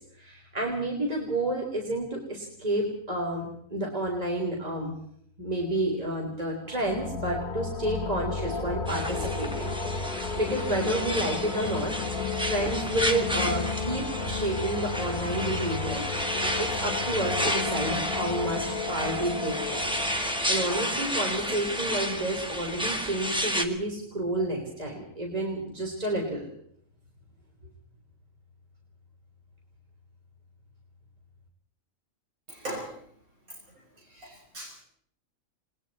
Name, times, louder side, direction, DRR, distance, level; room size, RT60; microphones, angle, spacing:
voice 1, 0.2-5.0 5.4-12.0 12.4-16.0 16.3-19.9 20.5-26.5, right 1 dB, 25° right, -1 dB, 3.9 m, -30 dB
sound 1, 6.6-22.2, left 4 dB, 40° left, 1.8 m, -33 dB
sound 2, 8.9-23.7, equal, 5° right, 1.8 m, -32 dB
voice 2, 32.5-32.9 34.1-34.8, right 1 dB, 80° right, -3 dB, 6.4 m, -38 dB
30.0 x 20.5 x 4.3 m, 0.67 s
omnidirectional pair, 1.4 m